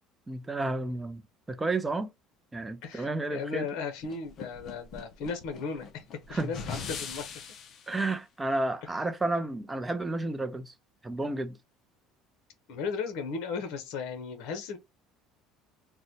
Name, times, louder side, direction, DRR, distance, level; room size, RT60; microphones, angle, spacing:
voice 1, 0.3-1.2 1.5-2.1 2.5-3.7 6.3-6.5 7.9-10.7 11.0-11.6, right 2 dB, 10° right, 0.5 m, -31 dB
voice 2, 2.8-6.0 6.3-7.4 12.7-14.8, left 5 dB, 70° left, 0.9 m, -36 dB
sound 1, 4.0-7.9, left 6 dB, 40° left, 0.6 m, -41 dB
3.8 x 2.2 x 2.9 m
cardioid pair, 145°, 0 cm